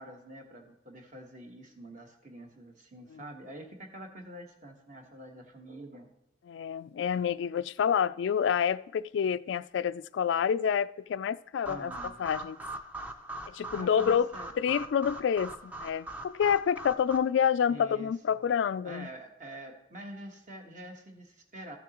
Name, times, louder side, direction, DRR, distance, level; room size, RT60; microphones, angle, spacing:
voice 1, 0.0-6.1 11.6-12.2 13.7-14.5 17.7-18.5 18.8-21.8, right 1 dB, 40° right, 1.4 m, -46 dB
voice 2, 6.5-11.9 12.2-12.6 13.5-14.3 14.6-19.1, left 7 dB, 80° left, 0.3 m, -28 dB
sound 1, 11.7-17.2, right 1 dB, 10° right, 0.5 m, -41 dB
14.0 x 7.1 x 3.0 m
head